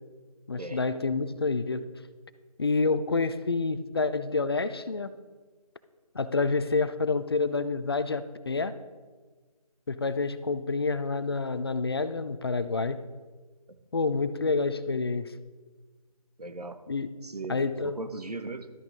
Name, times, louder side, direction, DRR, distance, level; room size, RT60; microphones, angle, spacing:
voice 1, 0.5-1.8 2.6-5.1 6.1-8.7 9.9-13.0 13.9-15.3 16.9-17.1 17.5-18.0, left 4 dB, 40° left, 13 dB, 0.4 m, -28 dB
voice 2, 16.4-16.8 17.2-18.7, right 3 dB, 90° right, 9 dB, 1.0 m, -38 dB
12.5 x 8.5 x 4.0 m, 1.4 s
figure-of-eight pair, 160°, 19 cm